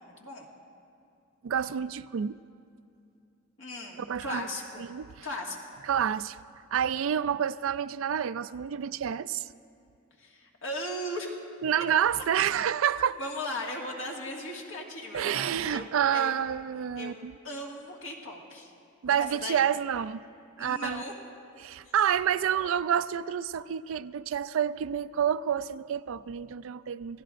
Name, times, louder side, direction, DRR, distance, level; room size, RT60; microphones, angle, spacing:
voice 1, 0.2-0.5 3.6-4.9 5.2-5.6 10.2-11.4 13.0-16.4 17.0-17.1 17.4-18.7 19.1-19.7 20.6-21.1 21.8-21.9, left 1 dB, 65° left, 1.9 m, -37 dB
voice 2, 1.4-2.4 4.1-4.5 4.9-5.3 5.8-6.4 6.7-9.5 11.6-13.2 15.1-17.3 19.0-20.2 20.6-21.0 21.6-27.2, right 8 dB, 70° right, 0.4 m, -28 dB
28.0 x 16.0 x 2.5 m
head